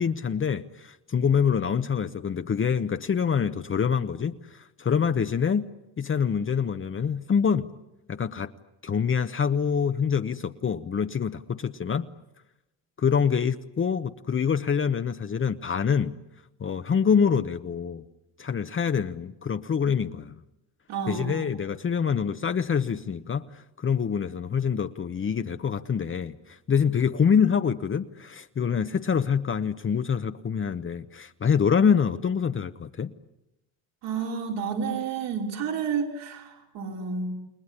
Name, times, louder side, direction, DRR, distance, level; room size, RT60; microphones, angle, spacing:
voice 1, 0.0-5.7 6.0-7.7 8.1-8.5 8.8-12.1 13.0-16.2 16.6-18.0 18.4-20.3 21.1-33.1, left 7 dB, 30° left, 9 dB, 1.0 m, -25 dB
voice 2, 20.9-21.5 34.0-37.3, right 6 dB, 75° right, 0 dB, 5.4 m, -30 dB
30.0 x 20.0 x 9.9 m, 0.92 s
supercardioid pair, 85°, 41 cm